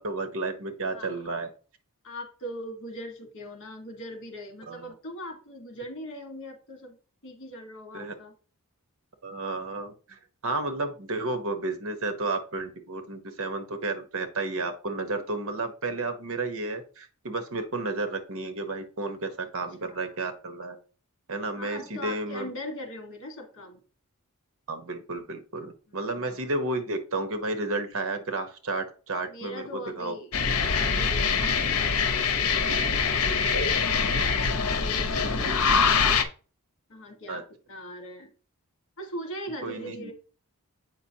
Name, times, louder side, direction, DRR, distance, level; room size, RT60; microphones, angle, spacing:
voice 1, 0.0-1.5 4.7-4.9 7.9-8.1 9.2-20.8 21.3-22.5 24.7-30.2 31.0-31.1 35.1-35.3 37.3-37.4 39.6-40.1, right 2 dB, 65° right, 8 dB, 1.1 m, -32 dB
voice 2, 2.0-7.0 7.2-8.3 19.8-20.2 21.6-23.8 25.9-26.0 29.3-30.3 30.7-33.6 34.8-36.2 36.9-38.3 39.0-40.1, equal, 60° left, 4 dB, 1.7 m, -40 dB
sound 1, 30.3-36.2, left 5 dB, 75° left, 0.9 m, -24 dB
7.9 x 5.3 x 2.9 m, 0.37 s
head